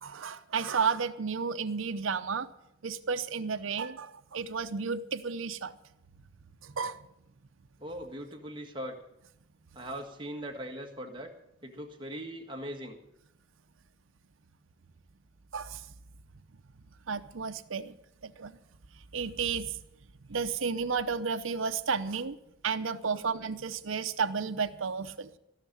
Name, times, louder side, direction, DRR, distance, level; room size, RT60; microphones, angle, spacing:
voice 1, 0.0-2.5 2.8-5.7 6.6-7.0 15.5-15.8 17.1-17.9 18.2-18.6 19.1-19.8 20.3-22.4 22.6-25.3, right 5 dB, 85° right, 9 dB, 0.7 m, -32 dB
voice 2, 7.8-8.9 9.7-11.3 11.6-13.0 22.9-23.4, equal, 25° right, 3 dB, 1.7 m, -40 dB
15.5 x 6.6 x 10.0 m, 0.83 s
head